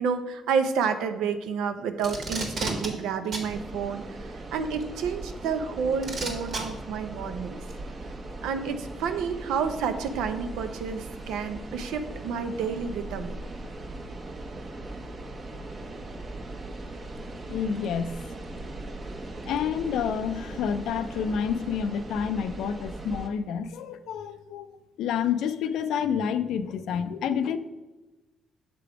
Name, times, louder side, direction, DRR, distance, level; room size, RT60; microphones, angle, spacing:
voice 1, 0.0-7.6 8.4-13.3, right 6 dB, 90° right, 9 dB, 0.5 m, -30 dB
Packing tape duct tape, 2.0-2.9 3.3-3.5 4.8-4.9 6.0-6.6 7.7-7.8, right 3 dB, 60° right, 1.4 m, -31 dB
sound 1, 3.5-23.3, right 2 dB, 40° right, 0.8 m, -39 dB
voice 2, 17.5-18.2 18.5-18.6 19.4-24.7 25.0-27.6, left 7 dB, 80° left, 12 dB, 0.4 m, -29 dB
6.7 x 3.4 x 4.9 m, 1.1 s
cardioid pair, 90°, 0 cm